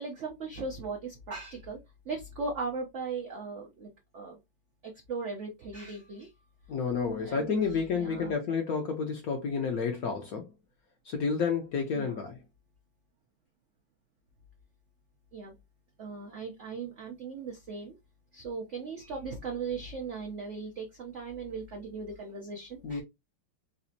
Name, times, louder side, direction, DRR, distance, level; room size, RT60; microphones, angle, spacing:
voice 1, 0.0-1.8 2.0-4.4 4.8-6.3 7.2-8.3 11.9-12.2 15.3-15.5 16.0-17.9 18.3-23.0, right 4 dB, 90° right, 0.6 m, -38 dB
voice 2, 6.7-10.5 11.1-12.4 22.8-23.0, left 5 dB, 65° left, 0.9 m, -30 dB
4.0 x 2.5 x 2.7 m
omnidirectional pair, 2.2 m